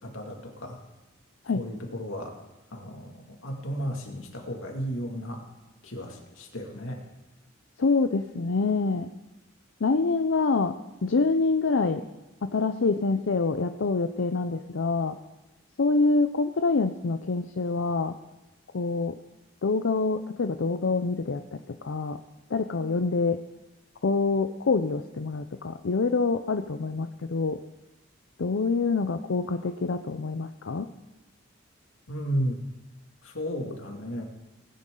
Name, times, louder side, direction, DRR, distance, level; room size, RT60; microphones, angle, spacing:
voice 1, 0.0-0.8 1.5-2.3 2.7-5.4 5.8-7.0 32.1-32.6 33.2-34.2, equal, 90° left, 1 dB, 2.3 m, -34 dB
voice 2, 7.8-9.1 9.8-10.7 11.0-12.0 12.4-15.2 15.8-18.1 18.7-19.2 19.6-22.2 22.5-23.4 24.0-27.6 28.4-30.9, left 4 dB, 70° left, 7 dB, 0.6 m, -26 dB
19.0 x 10.5 x 3.8 m, 1.0 s
head